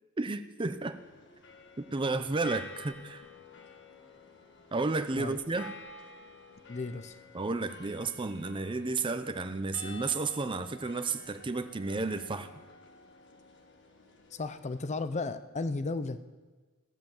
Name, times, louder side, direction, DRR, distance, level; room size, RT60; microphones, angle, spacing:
voice 1, 0.2-1.0 1.8-3.2 4.7-5.7 7.3-12.5, right 3 dB, 20° right, 9 dB, 0.5 m, -32 dB
sound 1, 0.9-15.0, left 3 dB, 55° left, 1.4 m, -51 dB
voice 2, 6.7-7.2 14.3-16.2, left 3 dB, 30° left, 12 dB, 0.6 m, -34 dB
15.5 x 8.0 x 7.1 m, 1.3 s
head